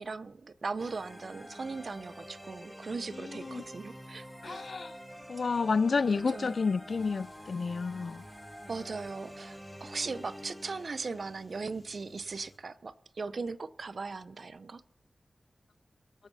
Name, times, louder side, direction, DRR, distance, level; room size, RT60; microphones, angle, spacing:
voice 1, 0.0-4.7 6.3-6.6 8.7-14.8, right 4 dB, 65° right, 0.6 m, -39 dB
sound 1, 0.8-11.5, equal, 5° right, 3.8 m, -48 dB
voice 2, 3.2-3.6 4.4-5.0 5.3-8.2, left 4 dB, 70° left, 0.4 m, -30 dB
sound 2, 7.0-12.6, left 1 dB, 45° left, 3.4 m, -57 dB
23.5 x 9.1 x 4.1 m
cardioid pair, 40°, 0 cm